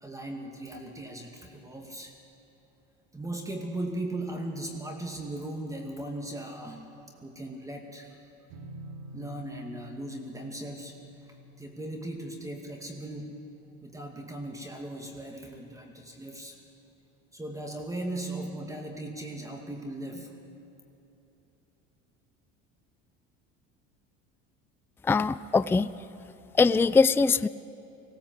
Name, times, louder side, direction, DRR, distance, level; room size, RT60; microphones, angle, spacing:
voice 1, 0.0-2.2 3.1-6.9 7.2-8.2 9.1-13.4 13.8-16.6 17.3-20.4, right 1 dB, 10° right, 2 dB, 2.4 m, -38 dB
sound 1, 8.5-14.1, equal, 70° right, 2.6 m, -49 dB
voice 2, 25.1-25.9 26.6-27.5, left 4 dB, 5° left, 16 dB, 0.4 m, -22 dB
20.0 x 17.0 x 7.9 m, 3.0 s
supercardioid pair, 80°, 31 cm